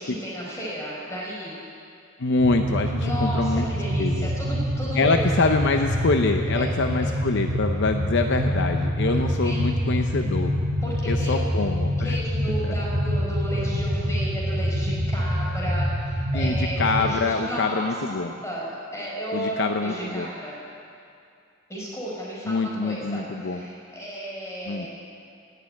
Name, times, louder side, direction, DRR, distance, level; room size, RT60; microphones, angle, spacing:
voice 1, 0.0-1.6 3.0-5.2 6.5-6.7 6.9-7.1 9.1-9.2 9.4-9.7 10.8-11.5 12.0-17.9 18.4-20.6 21.7-24.9, equal, 15° left, -6 dB, 4.5 m, -33 dB
voice 2, 2.2-3.7 4.0-4.3 5.0-10.5 11.1-12.2 12.6-12.7 16.3-18.3 19.3-20.3 22.5-23.6 24.7-24.9, left 3 dB, 60° left, 5 dB, 0.6 m, -25 dB
sound 1, 2.4-17.1, equal, 60° right, 2.2 m, -26 dB
17.0 x 6.8 x 9.5 m, 2.4 s
head